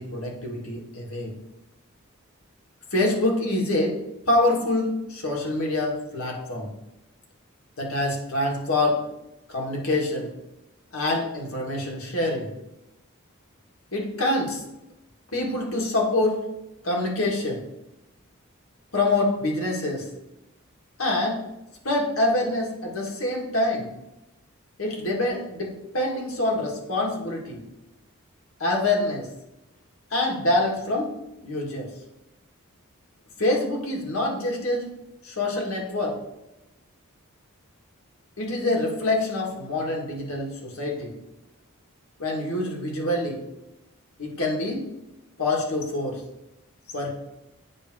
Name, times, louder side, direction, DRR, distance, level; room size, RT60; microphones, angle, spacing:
voice 1, 0.0-1.3 2.9-4.0 4.3-6.7 7.8-9.0 9.5-10.3 10.9-12.5 13.9-14.6 15.3-16.4 16.8-17.6 18.9-20.1 21.0-21.4 21.8-23.9 24.8-27.6 28.6-29.3 30.1-31.1 31.4-31.9 33.4-34.9 35.2-36.2 38.4-41.1 42.2-43.4 44.2-44.9 45.4-46.2 46.9-47.1, left 2 dB, 75° left, -1 dB, 1.8 m, -25 dB
8.6 x 2.9 x 6.0 m, 0.92 s
head